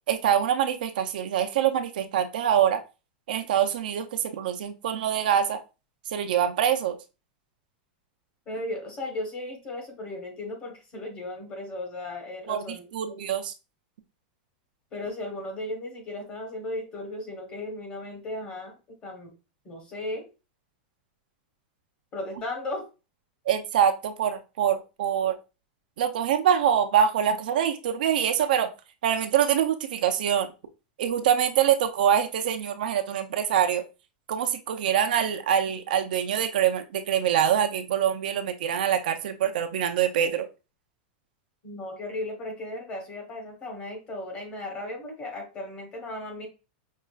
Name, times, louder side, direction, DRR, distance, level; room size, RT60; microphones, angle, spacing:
voice 1, 0.1-2.8 3.3-5.6 6.1-7.0 12.5-13.5 23.5-25.4 26.0-28.7 29.0-30.5 31.0-33.8 34.3-40.5, right 9 dB, 65° right, 7 dB, 0.5 m, -24 dB
voice 2, 8.5-13.2 14.9-18.7 19.0-19.3 19.6-20.2 22.1-22.8 41.6-46.5, left 2 dB, 20° left, 2 dB, 1.1 m, -36 dB
5.4 x 2.4 x 2.4 m, 0.30 s
supercardioid pair, 175°, 5 cm